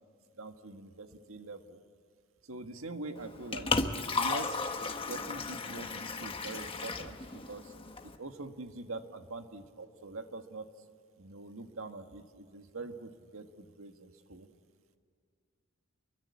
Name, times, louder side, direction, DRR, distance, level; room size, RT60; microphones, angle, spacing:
voice 1, 0.3-1.8 2.4-3.7 4.1-4.6 5.0-7.7 8.0-10.7 11.2-14.5, right 3 dB, 80° right, 6 dB, 1.7 m, -44 dB
Liquid, 3.2-8.2, left 3 dB, 25° left, 1.3 m, -35 dB
29.5 x 23.0 x 8.4 m, 2.2 s
head